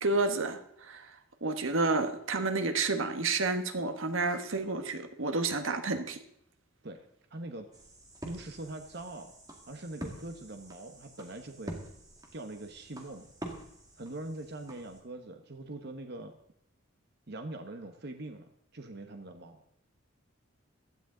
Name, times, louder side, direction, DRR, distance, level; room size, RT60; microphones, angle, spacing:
voice 1, 0.0-6.2, right 3 dB, 75° right, 8 dB, 1.3 m, -30 dB
voice 2, 7.3-7.7 8.2-9.3 9.7-11.8 12.3-13.3 14.0-16.3 17.3-19.6, right 2 dB, 55° right, 5 dB, 1.1 m, -43 dB
sound 1, 7.7-15.0, right 1 dB, 20° right, 2.1 m, -47 dB
16.0 x 12.5 x 3.9 m, 0.73 s
head